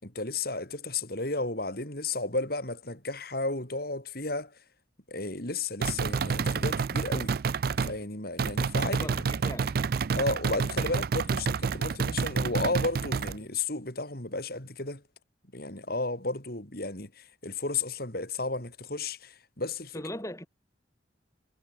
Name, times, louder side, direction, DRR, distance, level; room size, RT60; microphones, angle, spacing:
voice 1, 0.0-4.6 5.1-7.3 7.8-9.3 10.1-15.0 15.5-20.1, left 3 dB, 50° left, 5.0 m, -33 dB
sound 1, 5.8-8.0 8.4-13.4, right 5 dB, 50° right, 0.4 m, -29 dB
voice 2, 8.9-9.7 19.9-20.5, left 1 dB, 15° left, 4.5 m, -39 dB
head